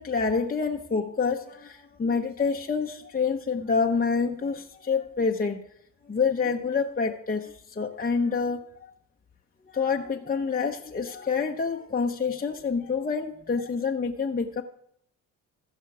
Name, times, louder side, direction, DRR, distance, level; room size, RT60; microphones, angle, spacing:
voice 1, 0.0-5.6 6.0-8.9 9.7-14.6, left 5 dB, 20° left, 2 dB, 0.9 m, -27 dB
15.5 x 5.7 x 4.8 m, 0.74 s
hypercardioid pair, 55°, 41 cm